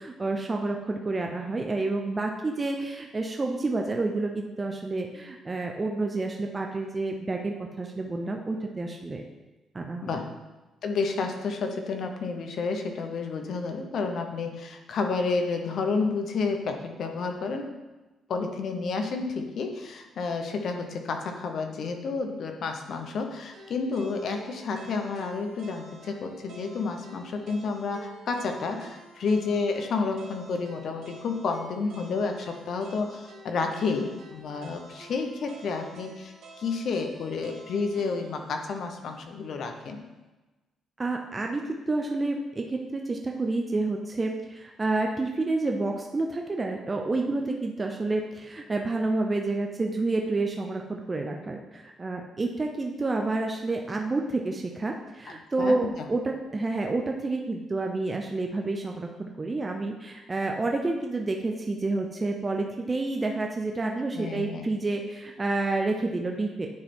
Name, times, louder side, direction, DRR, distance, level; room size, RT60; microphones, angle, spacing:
voice 1, 0.0-9.2 9.7-10.2 41.0-66.7, right 2 dB, 25° right, 2 dB, 0.6 m, -29 dB
voice 2, 10.8-17.8 18.3-40.0 55.6-56.1 64.1-64.7, left 4 dB, 65° left, 5 dB, 0.9 m, -30 dB
sound 1, 23.5-39.6, right 2 dB, 70° right, 1.1 m, -49 dB
9.5 x 3.3 x 4.3 m, 1.1 s
cardioid pair, 90°, 0 cm